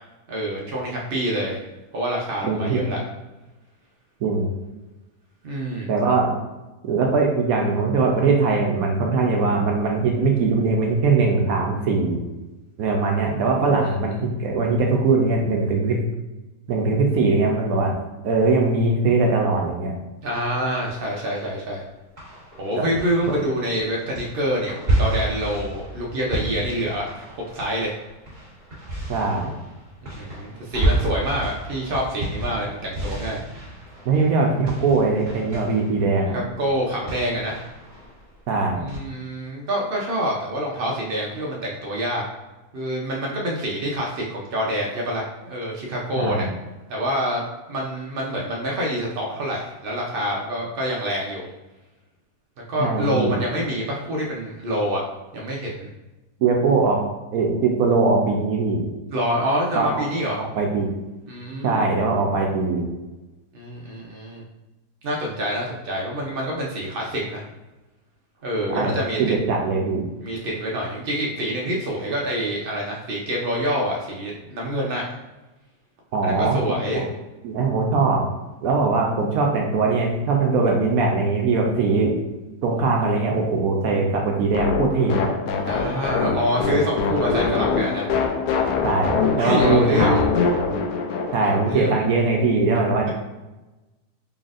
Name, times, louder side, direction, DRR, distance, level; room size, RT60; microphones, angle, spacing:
voice 1, 0.3-1.6 1.9-3.0 5.4-5.9 20.2-21.8 22.6-27.9 30.2-33.4 36.3-37.6 38.8-42.2 42.7-46.5 46.9-51.5 52.7-55.0 55.3-55.9 59.1-60.4 61.3-61.9 63.5-64.4 65.0-67.4 68.4-69.2 70.2-75.0 76.2-77.0 85.6-88.1 89.4-90.2 91.4-92.0, equal, 90° right, -2 dB, 0.5 m, -26 dB
voice 2, 2.4-2.8 4.2-4.5 5.9-6.3 6.9-12.2 12.8-16.0 16.7-17.9 18.2-19.9 22.8-22.9 23.3-23.4 29.1-29.5 34.0-36.4 38.5-38.8 46.2-46.5 52.8-53.4 56.4-57.0 57.3-58.9 59.8-60.0 60.6-61.0 61.6-62.9 68.8-68.9 69.2-70.0 76.1-76.6 76.9-77.1 77.4-78.3 78.6-82.2 82.6-85.3 88.8-90.2 91.3-93.1, right 3 dB, 70° right, 0 dB, 1.0 m, -21 dB
sound 1, 20.3-21.8 22.2-39.0, right 1 dB, 30° right, 1.5 m, -31 dB
sound 2, 84.5-92.0, left 5 dB, 70° left, 1.0 m, -23 dB
4.0 x 3.3 x 2.4 m, 1.1 s
omnidirectional pair, 1.8 m